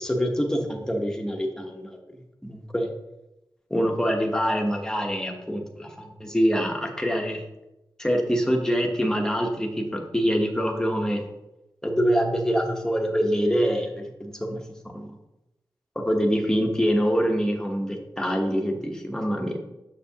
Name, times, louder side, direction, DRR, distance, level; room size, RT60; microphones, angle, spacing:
voice 1, 0.0-2.0 2.4-2.9 3.7-7.4 8.0-11.2 11.8-14.6 15.9-19.6, equal, 5° left, 1 dB, 1.0 m, -25 dB
6.7 x 6.5 x 2.8 m, 0.95 s
wide cardioid pair, 95°, 9 cm